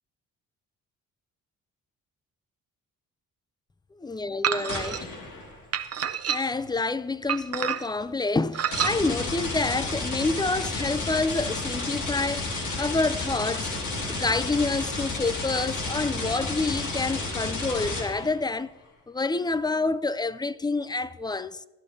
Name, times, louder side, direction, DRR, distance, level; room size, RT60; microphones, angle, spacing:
voice 1, 4.0-5.1 6.3-13.7 14.1-18.7 19.1-21.7, left 3 dB, 15° left, 0.3 m, -28 dB
sound 1, 4.4-5.0 5.7-6.7 7.3-8.0 8.5-9.0, right 9 dB, 45° right, 0.7 m, -28 dB
sound 2, 4.7-5.6 8.7-18.4, left 2 dB, 60° left, 2.2 m, -31 dB
16.5 x 11.0 x 2.7 m
supercardioid pair, 60°, 35 cm